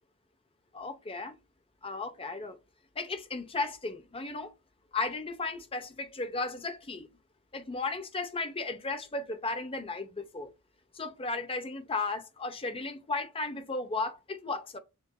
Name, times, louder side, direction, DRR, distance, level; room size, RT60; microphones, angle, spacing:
voice 1, 0.7-1.3 1.8-2.6 3.0-4.5 4.9-7.1 7.5-10.5 10.9-14.8, left 3 dB, 25° left, 0.7 m, -35 dB
7.4 x 2.7 x 2.2 m
head